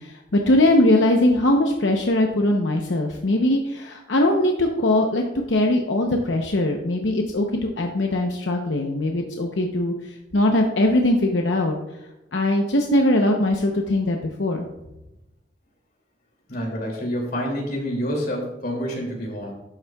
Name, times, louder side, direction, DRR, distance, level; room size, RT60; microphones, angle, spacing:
voice 1, 0.0-5.2 5.5-11.8 12.3-14.7, left 1 dB, 85° left, 2 dB, 0.8 m, -21 dB
voice 2, 16.5-19.5, equal, 55° left, -1 dB, 2.6 m, -28 dB
11.5 x 7.3 x 2.3 m, 0.93 s
head